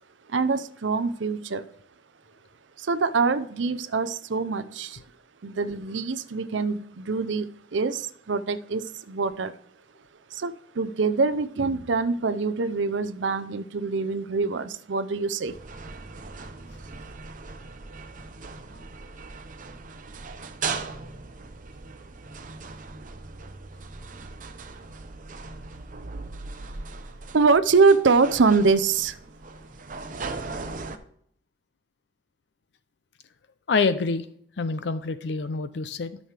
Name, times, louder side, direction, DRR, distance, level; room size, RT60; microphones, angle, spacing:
voice 1, 0.3-1.7 2.8-5.0 5.4-9.5 10.3-15.5 27.3-29.2, right 4 dB, 80° right, 13 dB, 0.6 m, -24 dB
sound 1, 15.5-31.0, right 4 dB, 45° right, 0.7 m, -39 dB
voice 2, 33.7-34.3 34.6-36.2, left 4 dB, 65° left, 12 dB, 0.5 m, -26 dB
12.5 x 6.3 x 3.4 m, 0.64 s
head